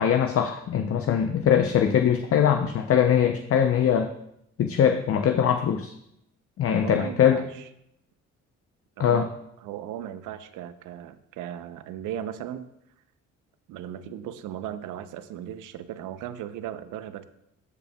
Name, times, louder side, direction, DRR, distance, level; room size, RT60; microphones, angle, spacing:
voice 1, 0.0-4.1 4.6-5.9 6.6-7.4 9.0-9.3, left 8 dB, 50° left, 6 dB, 0.5 m, -22 dB
voice 2, 6.8-7.7 9.0-9.3 9.6-12.7 13.7-17.3, right 10 dB, 90° right, 12 dB, 0.6 m, -37 dB
13.5 x 5.3 x 2.2 m, 0.78 s
cardioid pair, 90°, 30 cm